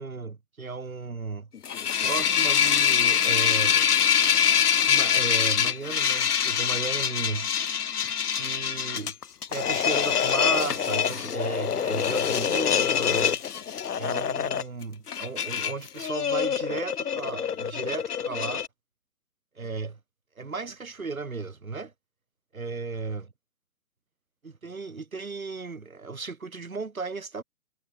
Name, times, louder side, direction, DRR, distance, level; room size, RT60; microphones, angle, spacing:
voice 1, 0.0-1.5 2.0-3.9 4.9-7.5 8.4-9.2 9.5-13.4 14.0-18.7 19.6-20.0 20.4-21.9 22.5-23.3 24.4-27.4, right 4 dB, 65° right, 5.7 m, -35 dB
sound 1, 1.5-18.7, left 8 dB, 85° left, 0.6 m, -25 dB
figure-of-eight pair, 140°, 44 cm